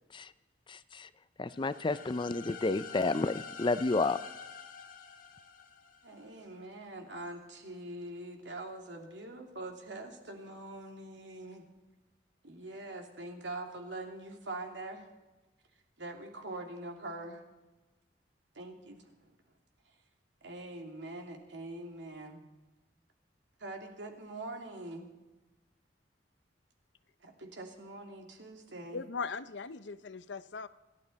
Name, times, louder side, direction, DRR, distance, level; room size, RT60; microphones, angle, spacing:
voice 1, 0.7-1.1 1.4-4.2, left 3 dB, 25° left, 15 dB, 0.5 m, -31 dB
sound 1, 1.5-6.3, left 6 dB, 50° left, 1.3 m, -47 dB
voice 2, 6.0-11.6 12.4-15.1 16.0-17.4 18.5-19.3 20.4-22.4 23.6-25.1 27.2-29.0, right 2 dB, 80° right, 3 dB, 2.6 m, -44 dB
voice 3, 28.9-30.7, left 5 dB, 80° left, 14 dB, 0.7 m, -39 dB
28.0 x 12.0 x 4.1 m, 1.1 s
head